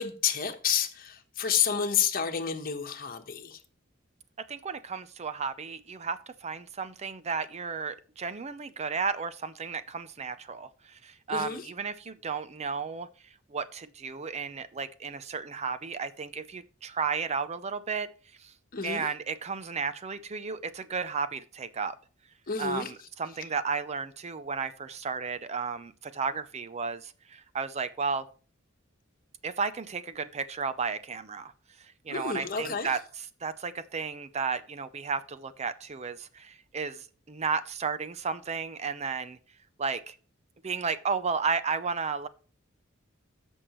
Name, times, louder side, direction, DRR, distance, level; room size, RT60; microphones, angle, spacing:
voice 1, 0.0-3.6 11.3-11.6 18.7-19.1 22.5-22.9 32.1-32.9, left 7 dB, 45° left, 1.2 m, -30 dB
voice 2, 4.5-13.1 13.5-18.1 18.4-18.5 18.8-21.9 22.6-28.3 29.4-31.5 31.8-39.4 39.8-40.2 40.6-42.3, right 5 dB, 35° right, 0.5 m, -33 dB
14.0 x 6.3 x 3.1 m
head